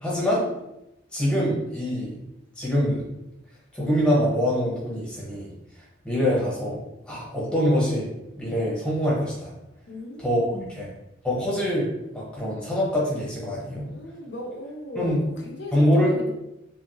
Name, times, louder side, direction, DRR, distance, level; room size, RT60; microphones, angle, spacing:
voice 1, 0.0-0.5 1.1-2.2 2.6-3.1 3.7-5.5 6.0-6.8 7.0-8.1 8.4-9.5 10.2-10.4 10.7-10.9 11.2-13.9 15.0-15.2 15.7-16.1, equal, 5° left, -6 dB, 0.9 m, -24 dB
voice 2, 9.9-10.9 13.9-16.3, left 1 dB, 65° left, -1 dB, 0.6 m, -37 dB
3.0 x 2.4 x 3.0 m, 0.90 s
head